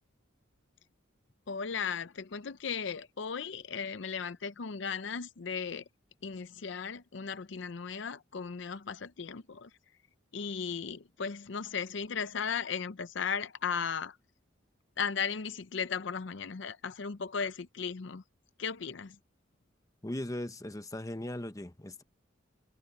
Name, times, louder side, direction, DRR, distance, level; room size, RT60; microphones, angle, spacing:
voice 1, 1.5-5.8 6.2-9.7 10.3-14.2 15.0-18.2 18.6-19.2, left 6 dB, 65° left, 0.6 m, -36 dB
voice 2, 20.0-22.0, left 1 dB, 15° left, 1.0 m, -38 dB
head